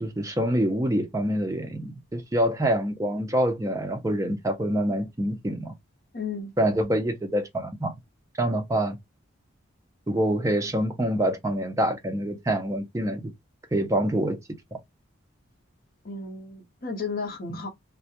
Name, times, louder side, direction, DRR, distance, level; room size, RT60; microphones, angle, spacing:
voice 1, 0.0-5.8 6.6-7.9 8.4-9.0 10.1-13.2 13.7-14.4 14.7-14.8, right 1 dB, 15° right, 0.4 m, -26 dB
voice 2, 6.1-6.5 16.0-17.7, left 4 dB, 45° left, 0.6 m, -33 dB
2.3 x 2.1 x 2.8 m
head